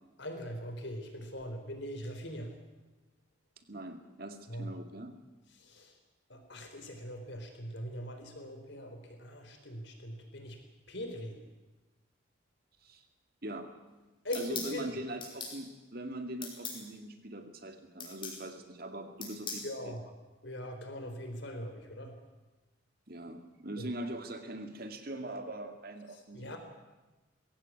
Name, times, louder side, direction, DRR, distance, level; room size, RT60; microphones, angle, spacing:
voice 1, 0.2-2.6 4.5-4.7 5.6-5.9 6.3-10.6 10.9-11.4 14.2-14.9 19.6-20.0 20.4-22.1 23.8-23.9 26.3-26.6, equal, 60° left, 5 dB, 4.3 m, -41 dB
voice 2, 3.6-5.1 12.8-13.1 13.4-13.7 14.3-19.6 23.1-26.6, right 1 dB, 45° right, 6 dB, 2.2 m, -42 dB
sound 1, 14.3-14.7 15.2-15.6 16.4-16.8 18.0-18.4 19.2-19.7, left 5 dB, 25° left, 4.9 m, -39 dB
21.0 x 16.5 x 9.7 m, 1.1 s
head